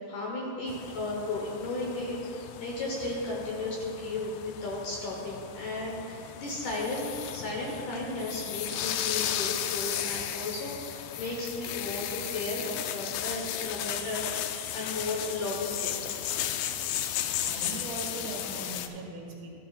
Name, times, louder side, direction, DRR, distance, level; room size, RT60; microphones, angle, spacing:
voice 1, 0.1-16.0, left 2 dB, 65° left, -2 dB, 2.3 m, -35 dB
sound 1, 0.7-18.9, left 11 dB, 85° left, 2.4 m, -35 dB
voice 2, 17.4-19.6, right 3 dB, 70° right, -3 dB, 3.3 m, -39 dB
13.5 x 11.0 x 2.4 m, 2.6 s
omnidirectional pair, 4.5 m